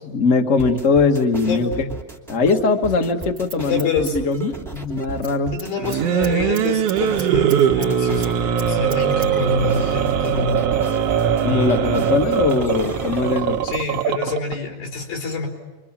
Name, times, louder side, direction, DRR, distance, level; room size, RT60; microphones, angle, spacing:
voice 1, 0.0-1.7 2.3-5.6 11.4-13.6, left 4 dB, 55° left, 4 dB, 0.8 m, -20 dB
sound 1, 0.6-14.1, right 4 dB, ahead, 1.9 m, -35 dB
Scissors, 2.9-4.9 5.1-5.3 5.6-7.9 8.2-9.3 9.6-9.7, right 5 dB, 35° right, 3.5 m, -38 dB
voice 2, 3.7-4.2 5.5-8.4 8.7-10.6 13.6-15.5, left 5 dB, 85° left, 0 dB, 6.1 m, -26 dB
sound 2, 5.8-14.5, right 8 dB, 75° right, 1.5 m, -21 dB
28.5 x 24.0 x 7.4 m, 1.2 s
omnidirectional pair, 4.1 m